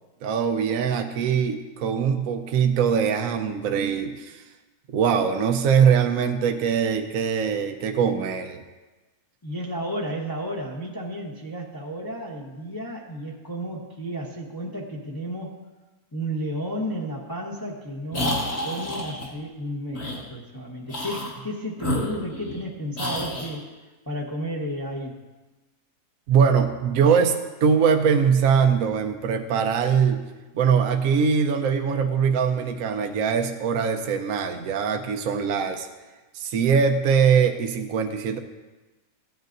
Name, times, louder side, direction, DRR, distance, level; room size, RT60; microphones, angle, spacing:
voice 1, 0.2-4.4 4.9-8.6 26.3-30.2 30.5-35.9 36.3-38.4, right 6 dB, 65° right, 5 dB, 0.9 m, -22 dB
voice 2, 9.4-15.6 16.1-23.6 24.1-25.1, equal, 15° left, -2 dB, 0.9 m, -32 dB
sound 1, 18.1-19.3 19.9-20.2 20.9-21.4 21.8-22.6 23.0-23.5, left 1 dB, 40° left, 1.9 m, -29 dB
14.5 x 9.2 x 2.6 m, 1.2 s
omnidirectional pair, 1.8 m